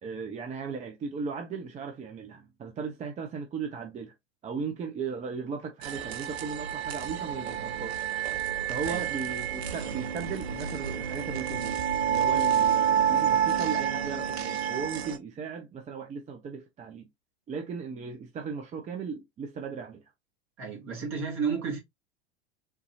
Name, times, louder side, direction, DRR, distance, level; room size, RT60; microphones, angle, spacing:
voice 1, 0.0-4.1 4.4-8.1 8.7-17.1 17.5-20.1, right 5 dB, 25° right, 0.6 m, -37 dB
sound 1, 5.8-15.2, right 9 dB, 75° right, 0.7 m, -29 dB
voice 2, 20.6-21.8, right 5 dB, 40° right, 1.7 m, -32 dB
3.7 x 2.7 x 2.7 m
hypercardioid pair, 90°, 32 cm